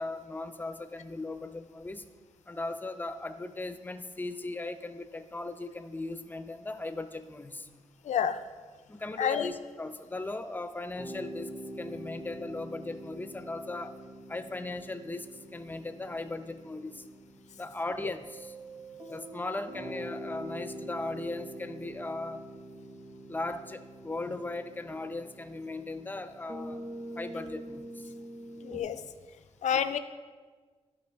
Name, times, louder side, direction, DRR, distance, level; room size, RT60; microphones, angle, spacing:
voice 1, 0.0-2.0 2.5-7.7 8.9-11.5 11.8-13.9 14.3-17.0 17.6-18.6 19.1-22.4 23.3-26.8 27.2-28.1, left 2 dB, 15° left, 9 dB, 0.5 m, -38 dB
voice 2, 8.0-8.4 9.2-9.5 28.6-29.0 29.6-30.0, left 8 dB, 85° left, 10 dB, 0.5 m, -28 dB
sound 1, 11.0-28.8, right 1 dB, 30° right, 1.3 m, -45 dB
12.5 x 5.6 x 3.4 m, 1.5 s
wide cardioid pair, 110°, 12 cm